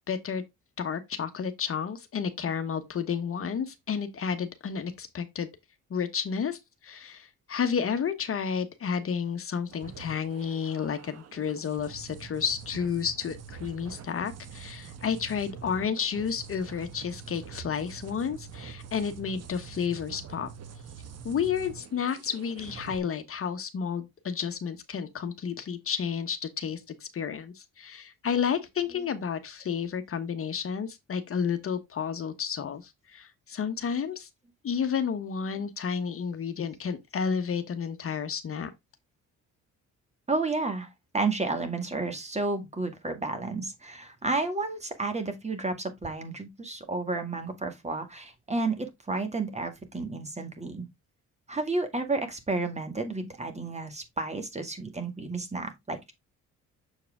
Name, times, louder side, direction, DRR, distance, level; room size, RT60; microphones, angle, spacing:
voice 1, 0.1-0.4 0.8-5.5 5.9-20.5 21.2-34.3 34.6-38.7, left 7 dB, 45° left, 1.0 m, -31 dB
sound 1, 9.7-23.0, right 6 dB, 55° right, 1.1 m, -45 dB
voice 2, 40.3-40.9 41.1-50.9 51.5-56.1, right 3 dB, 20° right, 1.9 m, -31 dB
7.0 x 4.6 x 3.6 m
cardioid pair, 90°, 30 cm